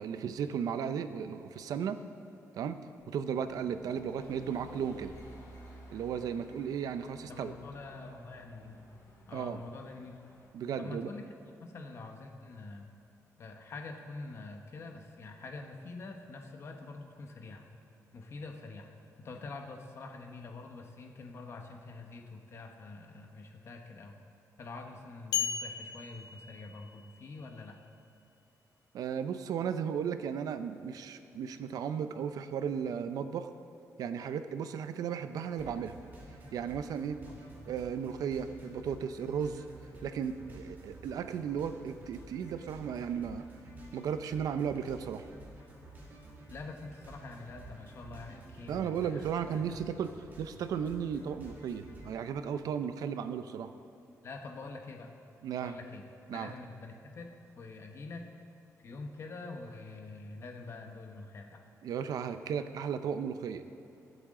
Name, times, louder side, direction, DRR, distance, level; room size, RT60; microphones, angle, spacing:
voice 1, 0.0-2.0 2.5-5.1 5.9-7.5 9.3-9.6 10.5-11.1 28.9-33.5 34.0-36.0 36.5-37.2 37.7-39.6 40.0-43.5 43.9-45.2 48.7-53.7 55.4-55.8 56.3-56.5 61.8-63.6, right 7 dB, 90° right, 10 dB, 0.6 m, -35 dB
sound 1, 3.0-10.5, left 1 dB, 65° left, 2.8 m, -54 dB
voice 2, 7.3-8.9 9.3-10.2 10.8-11.2 11.6-12.9 13.4-17.7 18.1-18.9 19.2-24.1 24.6-27.8 37.3-37.4 46.5-49.3 49.5-49.8 54.2-55.1 55.6-56.0 56.3-58.3 58.8-61.6, left 3 dB, 45° left, 3 dB, 1.3 m, -45 dB
sound 2, 25.3-27.2, left 8 dB, 80° left, 0.7 m, -36 dB
sound 3, 35.5-52.2, right 1 dB, 30° right, 2.6 m, -51 dB
22.0 x 8.1 x 3.8 m, 2.9 s
wide cardioid pair, 160°, 6 cm